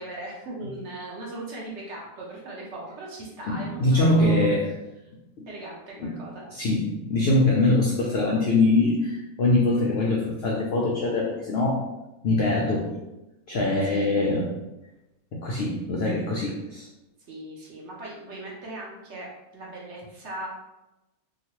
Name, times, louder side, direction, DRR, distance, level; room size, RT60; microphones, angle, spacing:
voice 1, 0.0-4.6 5.5-6.4 13.9-14.1 17.3-20.5, right 2 dB, 55° right, -4 dB, 0.9 m, -38 dB
voice 2, 3.5-4.7 5.4-5.5 6.0-6.1 6.5-11.9 12.2-13.0 13.5-14.5 15.3-16.9, left 2 dB, 75° left, -2 dB, 0.5 m, -23 dB
2.9 x 2.4 x 2.9 m, 0.97 s
omnidirectional pair, 1.6 m